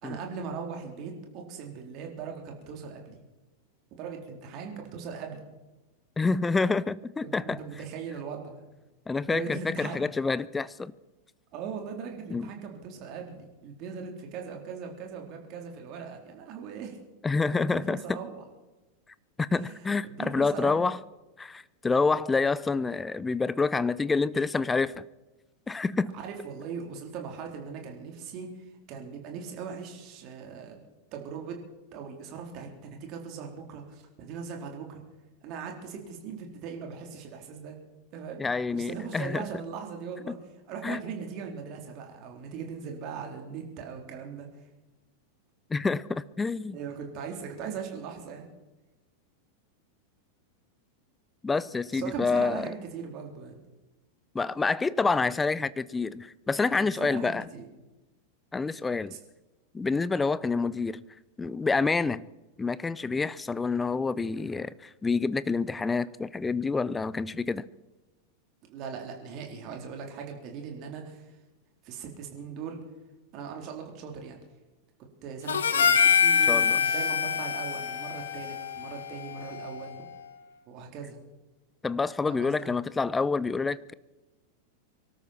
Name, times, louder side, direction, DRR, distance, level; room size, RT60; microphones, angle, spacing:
voice 1, 0.0-3.2 4.0-5.4 7.4-8.6 9.2-10.0 11.5-17.0 17.5-18.4 19.6-20.9 26.1-30.8 31.1-31.6 31.9-35.0 35.4-37.8 38.1-38.4 38.7-40.4 40.7-44.5 46.7-48.5 51.9-53.6 56.7-57.7 59.1-59.2 68.7-71.3 71.8-72.8 73.3-74.4 75.2-80.1 80.7-81.2 82.2-82.7, right 6 dB, 40° right, 2 dB, 3.9 m, -39 dB
voice 2, 6.2-7.6 9.1-10.9 12.3-12.5 17.2-18.2 19.4-21.0 21.4-25.0 25.7-26.1 38.4-39.4 40.8-41.0 45.7-46.8 51.4-52.7 54.3-57.4 58.5-59.2 59.7-61.0 61.4-62.2 62.6-67.7 76.5-76.8 81.8-83.9, left 4 dB, 10° left, 18 dB, 0.6 m, -28 dB
Harmonica, 75.5-80.0, left 7 dB, 65° left, 1.3 m, -25 dB
24.0 x 13.0 x 4.5 m, 1.1 s
figure-of-eight pair, 90°, 0 cm